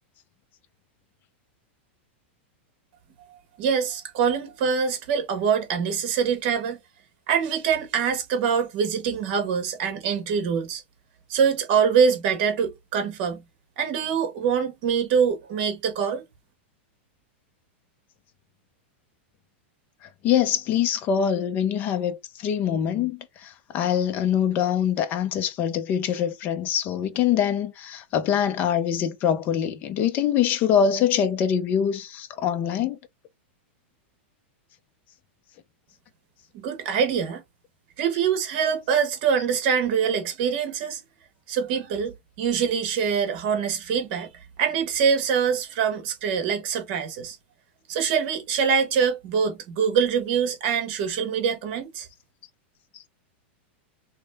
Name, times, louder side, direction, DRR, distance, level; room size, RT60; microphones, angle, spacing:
voice 1, 3.3-6.8 7.3-10.8 11.3-13.4 13.8-16.2 36.5-37.4 38.0-41.0 41.5-44.3 44.6-47.4 47.9-52.1, right 7 dB, 45° right, 1.5 m, -24 dB
voice 2, 20.2-33.0, left 8 dB, 30° left, 0.6 m, -24 dB
3.2 x 3.2 x 3.4 m
supercardioid pair, 160°, 6 cm